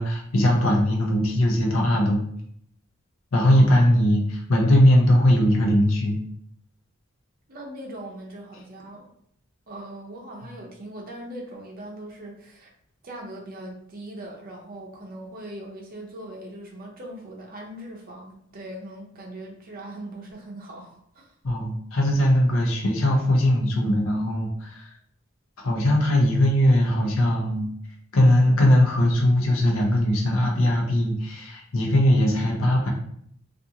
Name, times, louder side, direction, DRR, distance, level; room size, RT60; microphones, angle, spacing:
voice 1, 0.0-2.2 3.3-6.2 21.4-24.9 25.6-27.7 28.1-32.9, left 1 dB, 75° left, -1 dB, 0.6 m, -20 dB
voice 2, 7.5-9.1 9.7-12.7 13.0-21.3, right 1 dB, 45° right, -1 dB, 0.6 m, -40 dB
2.5 x 2.4 x 2.8 m, 0.68 s
head